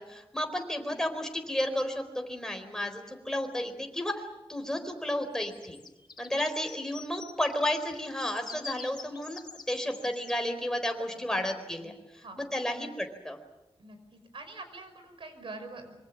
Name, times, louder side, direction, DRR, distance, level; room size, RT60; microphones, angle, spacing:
voice 1, 0.1-4.1 4.5-5.8 6.2-9.4 9.7-11.9 12.4-13.4, left 1 dB, 5° left, 5 dB, 4.3 m, -32 dB
sound 1, 5.4-10.4, left 5 dB, 50° left, 3.1 m, -46 dB
voice 2, 11.8-12.4 13.8-15.9, right 3 dB, 65° right, 8 dB, 5.7 m, -45 dB
26.0 x 24.0 x 7.4 m, 1.0 s
wide cardioid pair, 100°, 10 cm